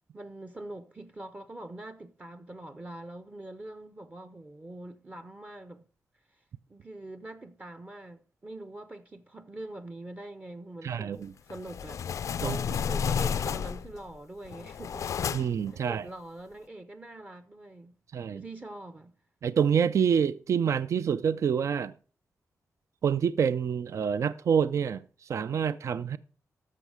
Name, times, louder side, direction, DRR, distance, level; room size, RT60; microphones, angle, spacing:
voice 1, 0.1-5.8 6.7-15.1 15.7-18.0 18.3-19.1, right 1 dB, 25° right, 0.7 m, -44 dB
voice 2, 10.8-11.3 12.4-12.6 15.3-16.1 18.1-18.4 19.4-21.9 23.0-25.0 25.3-26.2, right 7 dB, 60° right, 0.4 m, -27 dB
sound 1, 11.5-14.0 14.5-15.7, left 7 dB, 65° left, 0.4 m, -31 dB
13.5 x 6.4 x 4.9 m
wide cardioid pair, 110°, 6 cm